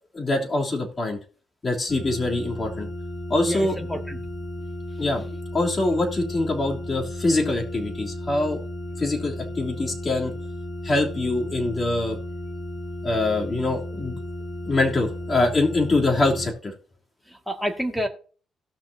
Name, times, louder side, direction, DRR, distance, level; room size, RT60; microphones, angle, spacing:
voice 1, 0.1-1.2 1.6-2.9 3.3-3.7 5.0-5.2 5.5-8.6 9.0-10.4 10.8-12.2 13.0-14.2 14.7-16.7, left 2 dB, 30° left, -1 dB, 3.2 m, -24 dB
sound 1, 1.9-16.5, left 1 dB, 50° left, 2.3 m, -34 dB
voice 2, 3.5-4.2 17.3-18.1, equal, ahead, 5 dB, 2.0 m, -28 dB
18.0 x 6.3 x 2.8 m, 0.40 s
cardioid pair, 90°, 0 cm